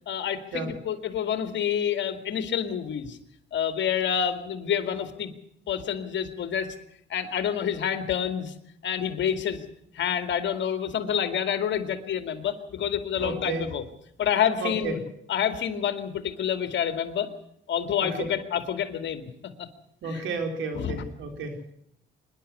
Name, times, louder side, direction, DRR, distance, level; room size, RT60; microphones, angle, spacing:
voice 1, 0.1-3.2 3.5-5.3 5.7-6.7 7.1-8.5 8.8-9.6 10.0-13.8 14.2-15.0 15.3-17.3 17.7-19.3 19.6-19.7 20.0-20.2 20.7-21.0, left 8 dB, 65° left, 9 dB, 2.3 m, -28 dB
voice 2, 13.2-13.7 14.6-15.0 18.0-18.1 20.0-21.7, right 4 dB, 80° right, 5 dB, 4.2 m, -32 dB
24.0 x 11.5 x 9.7 m, 0.73 s
cardioid pair, 90°, 20 cm